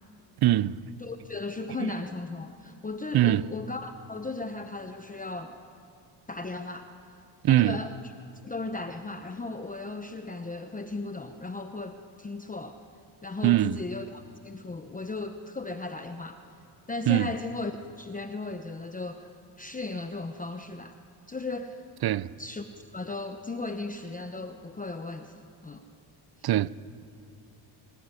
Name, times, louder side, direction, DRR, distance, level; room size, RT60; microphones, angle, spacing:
voice 1, 0.4-0.9 1.8-1.9 3.1-3.5 7.4-7.8 13.4-13.8 17.1-17.3 22.0-22.3 26.4-26.7, right 14 dB, 55° right, 0.6 m, -22 dB
voice 2, 1.0-5.6 6.3-6.9 7.5-7.9 8.4-12.8 13.2-16.4 16.9-21.0 21.3-21.8 22.4-22.6 22.9-25.8 26.4-26.5, left 3 dB, 15° left, 1.0 m, -36 dB
25.5 x 18.5 x 9.9 m
cardioid pair, 120°, 46 cm